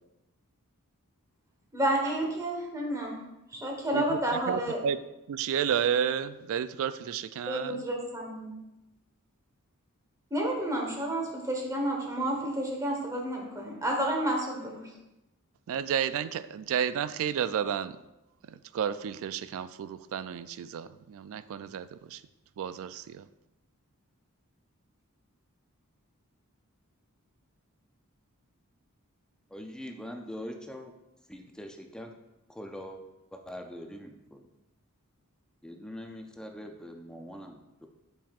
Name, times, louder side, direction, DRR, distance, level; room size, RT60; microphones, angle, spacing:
voice 1, 1.7-3.2 3.5-4.8 7.5-8.6 10.3-15.0, right 1 dB, 15° right, 0 dB, 1.2 m, -30 dB
voice 2, 4.5-5.0 5.3-7.7 15.7-18.0 18.5-22.2 22.6-23.2, right 8 dB, 65° right, 15 dB, 0.3 m, -31 dB
voice 3, 29.5-30.9 31.3-32.1 32.5-33.0 33.3-34.5 35.6-37.9, equal, 5° left, 4 dB, 0.4 m, -43 dB
7.4 x 5.4 x 2.4 m, 0.94 s
head